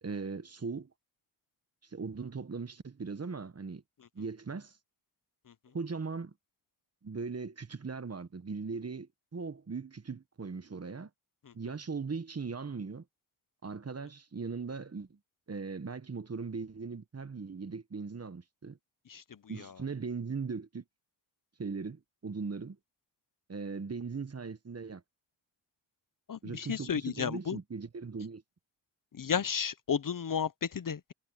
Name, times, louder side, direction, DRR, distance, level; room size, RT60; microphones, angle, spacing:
voice 1, 0.0-0.9 1.9-3.8 4.1-4.7 5.7-6.3 7.0-11.1 11.5-13.0 13.6-15.2 15.5-18.8 19.5-20.8 21.6-22.8 23.5-25.0 26.4-28.4, right 4 dB, 30° right, 1.5 m, -39 dB
voice 2, 26.3-27.6 29.1-31.1, left 7 dB, 40° left, 1.0 m, -33 dB
supercardioid pair, 55°, 48 cm